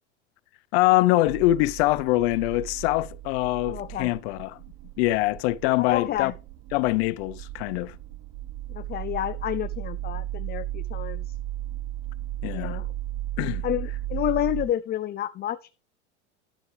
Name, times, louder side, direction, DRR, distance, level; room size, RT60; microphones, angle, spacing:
voice 1, 0.7-4.6 5.0-6.3 6.7-8.0 12.4-12.8 13.4-13.6, left 17 dB, 65° left, 0.8 m, -24 dB
sound 1, 1.3-14.7, right 14 dB, 50° right, 0.9 m, -35 dB
voice 2, 3.7-4.1 5.8-6.3 8.7-11.3 12.5-12.9 13.6-15.7, left 12 dB, 30° left, 0.6 m, -29 dB
11.5 x 7.9 x 3.3 m
hypercardioid pair, 95°, 34 cm